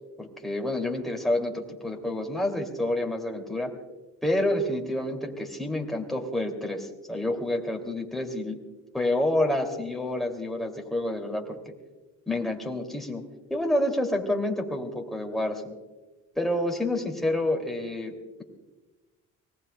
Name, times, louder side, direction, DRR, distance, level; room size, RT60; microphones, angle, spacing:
voice 1, 0.2-3.7 4.2-8.6 8.9-11.6 12.3-13.2 13.5-15.7 16.4-18.1, left 1 dB, ahead, 1 dB, 2.5 m, -28 dB
24.5 x 19.0 x 2.2 m, 1.2 s
cardioid pair, 90°, 30 cm